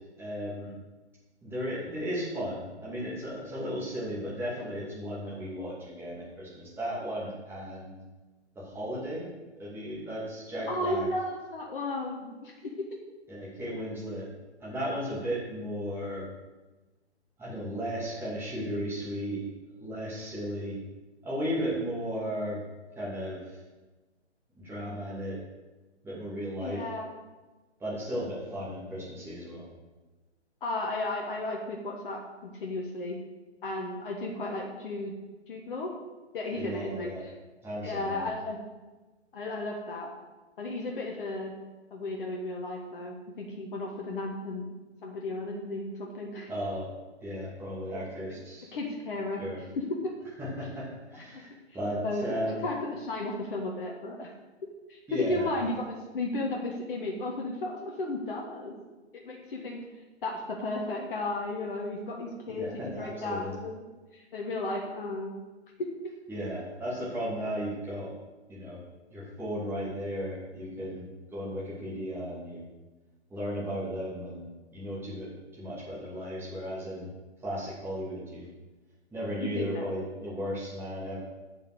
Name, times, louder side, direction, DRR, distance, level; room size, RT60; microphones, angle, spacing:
voice 1, 0.2-0.7 1.4-8.0 8.5-9.3 9.6-11.1 13.3-14.3 14.6-16.3 17.4-19.4 19.8-20.8 21.2-22.6 23.0-23.6 24.6-25.4 26.0-26.8 27.8-29.7 36.6-37.2 37.6-38.3 46.5-46.9 47.2-48.7 49.4-49.6 50.4-52.6 55.1-55.7 62.5-63.5 66.3-68.1 68.5-68.8 69.1-71.0 71.3-72.6 73.3-75.3 75.6-77.1 77.4-78.5 79.1-81.2, equal, 5° right, -8 dB, 2.6 m, -35 dB
voice 2, 10.7-12.8 26.6-27.1 30.6-33.2 33.6-35.1 35.5-35.9 36.3-37.1 37.8-38.6 39.3-40.1 40.6-41.5 41.9-44.6 45.0-46.5 47.9-48.0 48.7-49.7 50.0-50.1 51.3-51.4 52.0-52.2 52.6-54.3 54.9-58.8 59.1-59.8 60.2-63.8 64.1-65.3 79.4-79.8, left 2 dB, 50° left, 0 dB, 1.6 m, -34 dB
7.5 x 7.4 x 6.7 m, 1.2 s
figure-of-eight pair, 130°, 35 cm